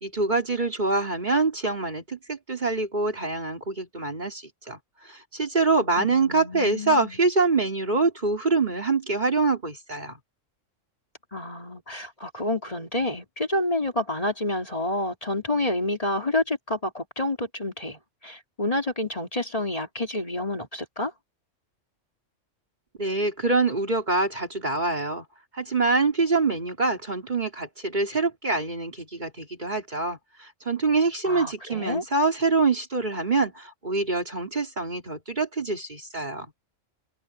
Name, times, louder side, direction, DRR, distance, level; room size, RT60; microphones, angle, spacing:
voice 1, 0.0-4.8 5.1-10.2 23.0-25.2 25.5-36.5, right 3 dB, 35° right, 2.9 m, -25 dB
voice 2, 6.0-7.2 11.3-21.1 31.3-32.0, left 1 dB, 30° left, 2.9 m, -29 dB
open air
omnidirectional pair, 1.3 m